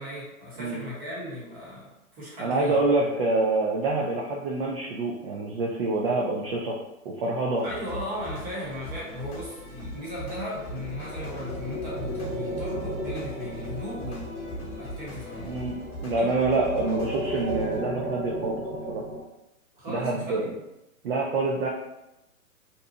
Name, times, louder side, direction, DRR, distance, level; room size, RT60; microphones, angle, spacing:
voice 1, 0.0-3.2 7.6-15.6 16.1-16.4 19.7-20.5, left 1 dB, 20° right, -5 dB, 0.9 m, -37 dB
voice 2, 2.4-6.8 7.0-7.6 15.4-19.0 19.9-20.5 21.0-21.7, right 2 dB, 45° right, -2 dB, 0.5 m, -26 dB
sound 1, 7.6-17.8, equal, 25° left, 1.0 m, -39 dB
sound 2, 10.4-19.2, right 1 dB, 80° right, 1.1 m, -35 dB
2.7 x 2.2 x 2.7 m, 0.91 s
hypercardioid pair, 130°, 42 cm